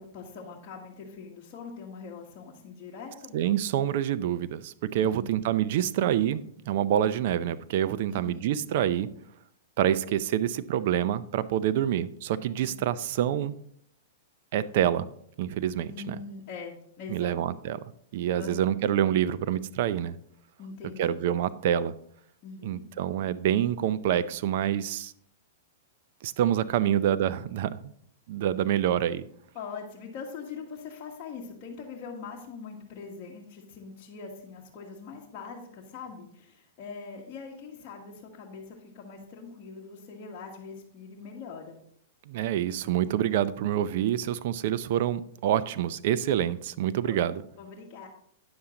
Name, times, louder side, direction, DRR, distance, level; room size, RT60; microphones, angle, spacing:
voice 1, 0.0-3.3 5.0-5.4 8.1-8.5 12.6-12.8 15.9-17.4 18.3-18.8 20.6-21.2 22.4-22.8 26.8-27.0 29.5-41.8 47.1-47.2 47.6-48.1, left 5 dB, 35° left, -3 dB, 1.5 m, -42 dB
voice 2, 3.3-9.1 9.8-13.5 14.5-15.1 15.4-16.2 17.1-17.8 18.1-20.1 21.0-21.9 22.6-25.1 26.2-27.8 28.3-29.3 42.3-47.4, right 10 dB, 55° right, 15 dB, 0.5 m, -27 dB
9.6 x 7.1 x 3.8 m, 0.67 s
hypercardioid pair, 140°, 0 cm